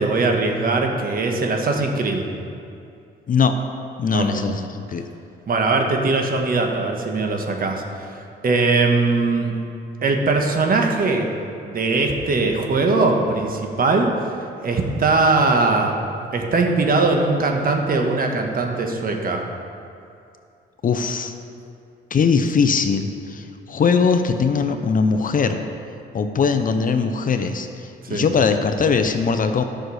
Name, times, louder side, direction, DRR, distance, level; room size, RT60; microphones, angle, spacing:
voice 1, 0.0-2.3 4.1-4.3 5.5-8.1 8.4-9.5 10.0-11.3 11.6-14.1 14.6-16.0 16.3-19.4 28.0-28.3, right 3 dB, 45° right, 2 dB, 1.4 m, -20 dB
voice 2, 4.0-5.1 20.8-21.3 22.1-25.6 26.1-29.6, left 5 dB, 45° left, 7 dB, 0.7 m, -20 dB
11.5 x 6.4 x 4.9 m, 2.5 s
cardioid pair, 90°, 20 cm